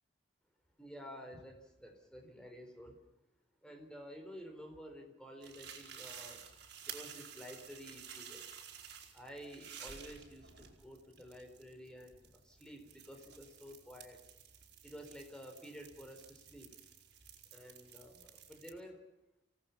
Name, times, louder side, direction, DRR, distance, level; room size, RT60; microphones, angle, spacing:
voice 1, 0.8-3.0 3.6-6.5 6.8-8.5 9.1-14.2 14.8-16.7 17.5-19.0, equal, 5° left, 3 dB, 4.2 m, -51 dB
sound 1, 5.4-18.7, right 7 dB, 65° right, 4.2 m, -53 dB
28.5 x 18.0 x 6.0 m, 0.91 s
head